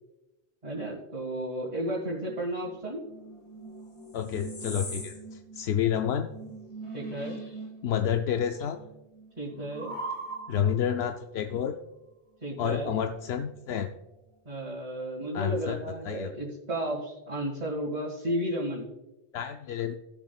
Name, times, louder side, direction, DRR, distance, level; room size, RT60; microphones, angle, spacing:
voice 1, 0.6-3.0 6.9-7.4 9.4-10.0 12.4-12.9 14.5-18.9, right 1 dB, 40° right, -5 dB, 2.1 m, -33 dB
sound 1, 2.6-8.2 8.4-10.9 12.5-13.6, right 2 dB, 30° left, 1.1 m, -42 dB
voice 2, 4.1-6.3 7.8-8.8 10.5-11.8 12.6-13.9 15.3-16.3 19.3-19.9, left 9 dB, 80° left, 6 dB, 0.8 m, -29 dB
16.5 x 7.4 x 2.3 m, 1.0 s
omnidirectional pair, 1.1 m